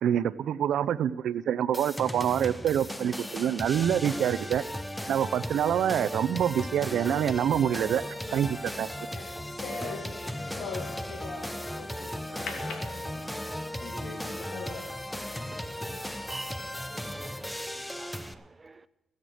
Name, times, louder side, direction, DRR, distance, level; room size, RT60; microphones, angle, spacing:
voice 1, 0.0-4.6 5.1-8.0 8.3-8.9, right 9 dB, 80° right, 0.6 m, -26 dB
sound 1, 1.7-18.3, equal, 5° left, 0.9 m, -36 dB
sound 2, 7.4-11.8 12.5-13.6 14.1-14.2 14.5-15.0, left 4 dB, 85° left, 2.1 m, -41 dB
voice 2, 9.8-11.1 11.7-14.7 15.4-16.2, left 3 dB, 70° left, 2.8 m, -47 dB
voice 3, 15.5-15.9 16.3-16.6 16.9-18.9, right 3 dB, 30° right, 0.7 m, -47 dB
17.0 x 8.1 x 6.3 m
cardioid pair, 80°, 0 cm